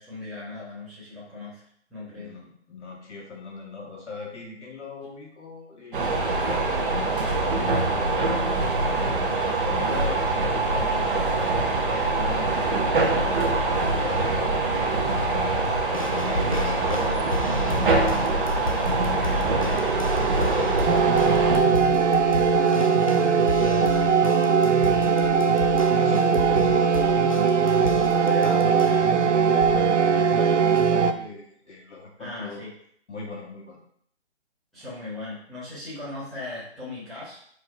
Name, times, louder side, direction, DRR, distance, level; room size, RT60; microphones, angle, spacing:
voice 1, 0.0-1.6 1.9-2.3 19.3-19.5 32.2-32.7 34.7-37.4, left 2 dB, ahead, -15 dB, 1.3 m, -38 dB
voice 2, 2.2-15.8 16.1-21.5 22.1-22.8 23.2-32.6 33.1-33.8, left 3 dB, 75° left, -2 dB, 2.1 m, -39 dB
sound 1, 5.9-21.6, right 3 dB, 45° right, 1.2 m, -24 dB
sound 2, 15.9-29.2 29.6-30.0 30.8-30.9, left 2 dB, 30° left, 0.4 m, -34 dB
sound 3, 19.7-31.1, right 6 dB, 80° right, 0.7 m, -20 dB
4.7 x 4.6 x 4.5 m, 0.66 s
hypercardioid pair, 165°, 35 cm